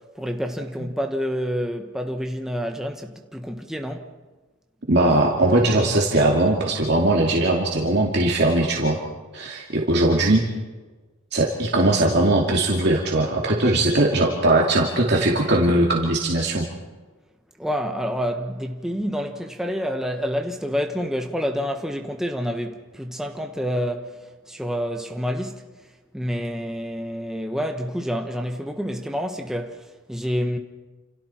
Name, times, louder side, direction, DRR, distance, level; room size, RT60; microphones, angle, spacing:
voice 1, 0.0-4.1 17.6-25.7 26.1-30.6, equal, ahead, 1.2 m, -28 dB
voice 2, 4.9-9.0 9.3-10.4 11.3-16.7, right 2 dB, 50° right, 2.6 m, -20 dB
29.0 x 28.5 x 4.5 m
head